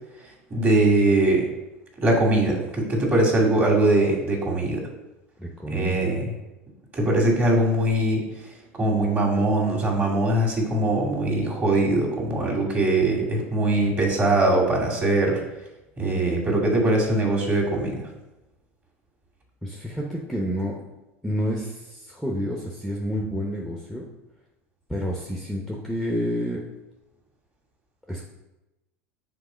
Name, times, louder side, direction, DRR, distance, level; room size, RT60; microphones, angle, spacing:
voice 1, 0.5-1.5 2.0-4.8 5.7-6.3 6.9-8.2 8.8-15.4 16.0-18.0, right 2 dB, 25° right, -2 dB, 2.3 m, -21 dB
voice 2, 5.4-6.0 19.6-20.8 21.2-24.0 24.9-26.6 28.1-28.3, equal, ahead, -1 dB, 0.9 m, -29 dB
5.9 x 3.6 x 5.1 m, 0.98 s
hypercardioid pair, 80°, 7 cm